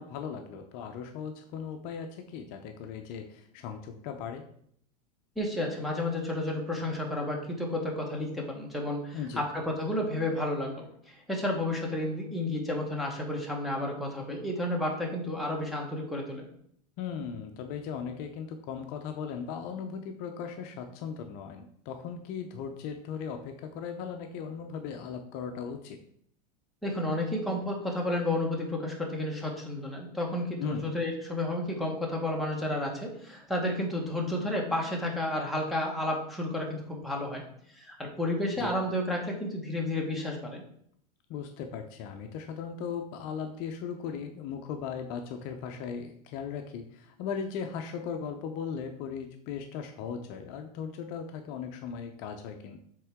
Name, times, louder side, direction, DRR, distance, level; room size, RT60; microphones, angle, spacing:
voice 1, 0.0-4.4 9.1-9.4 17.0-26.0 30.6-30.8 38.6-38.7 41.3-52.8, left 7 dB, 45° left, 5 dB, 0.6 m, -38 dB
voice 2, 5.4-16.5 26.8-37.4 37.7-40.6, left 1 dB, ahead, -2 dB, 1.2 m, -31 dB
7.5 x 3.6 x 3.5 m, 0.66 s
supercardioid pair, 140°, 20 cm